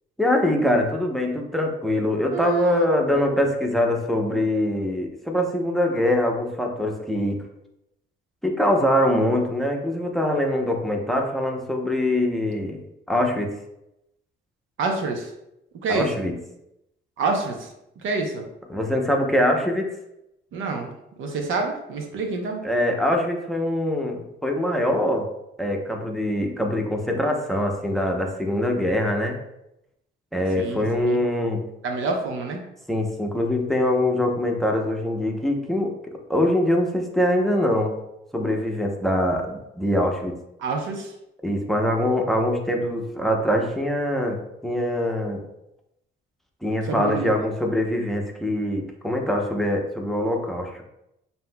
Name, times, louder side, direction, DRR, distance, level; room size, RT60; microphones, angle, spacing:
voice 1, 0.2-7.4 8.4-12.8 13.1-13.5 15.9-16.4 18.7-19.9 22.6-25.3 25.6-29.4 30.3-31.6 32.9-35.9 36.3-38.0 38.3-40.4 41.4-45.4 46.6-50.8, left 1 dB, ahead, 2 dB, 0.7 m, -23 dB
voice 2, 2.3-3.0 14.8-15.3 15.8-16.1 17.2-17.7 18.0-18.5 20.5-20.9 21.2-22.6 30.6-31.2 31.8-32.6 40.6-41.1 46.8-47.3, right 3 dB, 80° right, 3 dB, 0.8 m, -27 dB
7.4 x 2.7 x 2.2 m, 0.85 s
cardioid pair, 90°, 20 cm